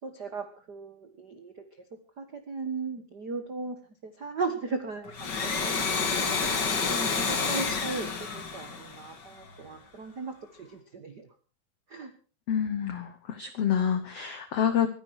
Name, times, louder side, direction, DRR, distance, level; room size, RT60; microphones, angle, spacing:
voice 1, 0.0-1.8 2.2-6.3 6.9-8.1 8.3-11.3 11.9-12.1, right 4 dB, 75° right, 7 dB, 0.9 m, -37 dB
Domestic sounds home sounds, 5.1-9.6, left 5 dB, 40° left, 1.9 m, -29 dB
voice 2, 12.5-14.9, left 8 dB, 90° left, 11 dB, 1.3 m, -27 dB
24.0 x 10.5 x 4.7 m, 0.37 s
omnidirectional pair, 4.4 m